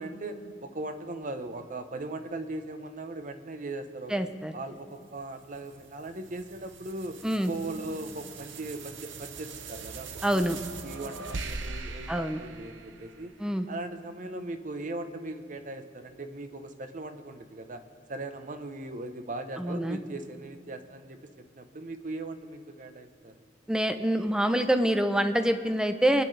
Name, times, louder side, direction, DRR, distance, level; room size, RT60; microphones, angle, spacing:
voice 1, 0.0-4.2 4.5-13.3 13.7-17.8 18.1-23.3, right 2 dB, 45° right, 8 dB, 0.9 m, -39 dB
voice 2, 4.1-4.5 7.2-7.5 10.2-10.6 12.1-12.4 13.4-13.7 19.6-20.0 23.7-26.2, right 1 dB, 5° right, 8 dB, 0.6 m, -26 dB
sound 1, 4.9-13.5, right 4 dB, 85° right, 0.8 m, -42 dB
27.5 x 10.0 x 3.3 m, 2.4 s
head